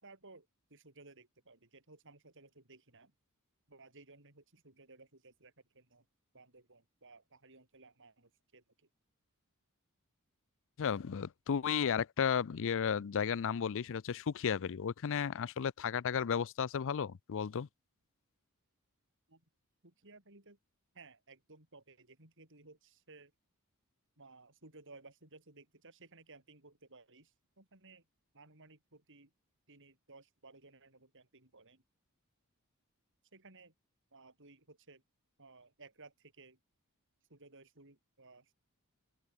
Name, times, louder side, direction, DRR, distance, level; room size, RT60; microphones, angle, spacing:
voice 1, 0.0-3.1 3.7-6.0 6.3-8.6 19.3-19.4 19.8-20.6 20.9-23.3 24.2-28.0 28.3-29.3 29.7-31.8 33.3-33.7 34.1-35.0 35.4-36.6 37.3-38.5, right 3 dB, 60° right, 6.8 m, -58 dB
voice 2, 10.8-17.7, left 7 dB, 60° left, 0.5 m, -34 dB
open air
head